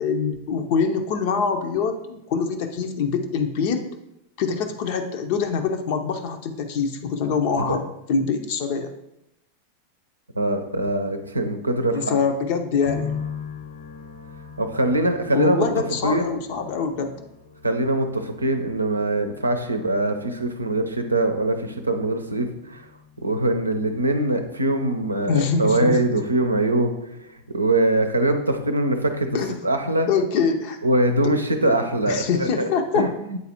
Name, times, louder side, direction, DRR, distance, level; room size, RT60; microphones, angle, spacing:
voice 1, 0.0-3.8 4.4-8.9 11.9-13.1 15.3-17.1 25.3-26.0 29.3-29.6 30.1-30.8 31.2-31.3 31.6-31.8 32.1-33.1, left 5 dB, 45° left, 6 dB, 0.7 m, -24 dB
voice 2, 10.4-12.2 14.6-15.7 16.0-16.4 17.6-22.9 23.2-26.9 27.5-29.3 29.6-30.1 30.8-32.7 32.9-33.4, right 2 dB, 80° right, 6 dB, 0.6 m, -22 dB
sound 1, 12.8-28.1 28.3-29.2, left 6 dB, 60° left, 1.1 m, -41 dB
8.3 x 4.0 x 2.8 m, 0.86 s
figure-of-eight pair, 90°, 0 cm